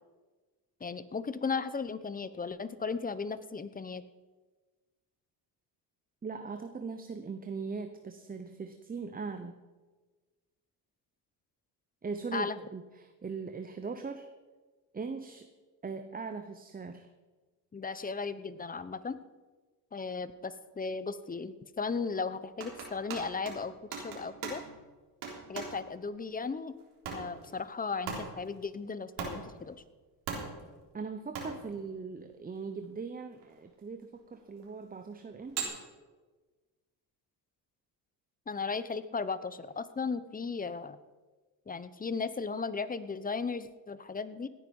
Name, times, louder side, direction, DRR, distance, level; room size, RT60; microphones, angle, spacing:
voice 1, 0.8-4.0 12.3-12.6 17.7-19.2 19.9-24.6 25.5-26.7 27.1-29.8 38.5-41.0 41.7-44.5, left 4 dB, 20° left, 14 dB, 0.8 m, -36 dB
voice 2, 6.2-9.5 12.0-14.3 14.9-15.5 15.8-17.1 30.9-35.7, right 4 dB, 20° right, 8 dB, 0.8 m, -40 dB
sound 1, 22.6-24.8 25.2-25.9 26.8-27.6 28.1-28.5 29.2-29.6 30.3-30.8 31.3-31.7 32.8-32.9 33.4-33.5 34.2-34.6 35.4-35.6, right 5 dB, 85° right, 3.7 m, -39 dB
17.0 x 9.9 x 5.4 m, 1.3 s
cardioid pair, 105°, 42 cm